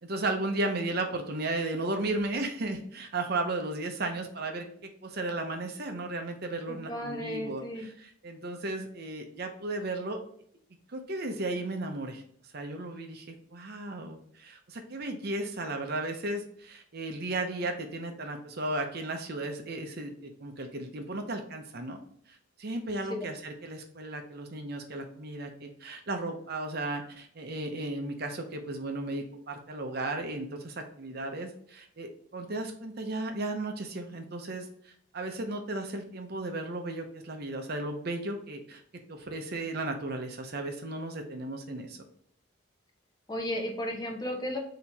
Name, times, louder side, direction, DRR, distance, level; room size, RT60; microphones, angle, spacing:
voice 1, 0.0-10.2 10.9-12.2 12.5-22.0 22.3-38.8 39.1-42.0, right 2 dB, 50° right, 4 dB, 0.6 m, -35 dB
voice 2, 6.7-7.9 23.1-23.3 43.3-44.6, left 1 dB, 20° left, 1 dB, 0.7 m, -34 dB
4.3 x 2.9 x 3.4 m, 0.64 s
head